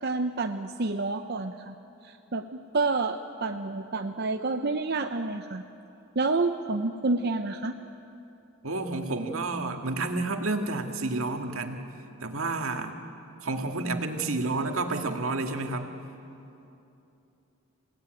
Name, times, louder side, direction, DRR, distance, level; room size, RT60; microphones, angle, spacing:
voice 1, 0.0-1.7 2.0-5.6 6.2-7.8, right 3 dB, 50° right, 6 dB, 0.7 m, -29 dB
voice 2, 8.6-11.8 12.2-12.9 13.4-15.9, right 3 dB, 80° right, 4 dB, 2.0 m, -30 dB
27.5 x 17.0 x 9.1 m, 2.8 s
head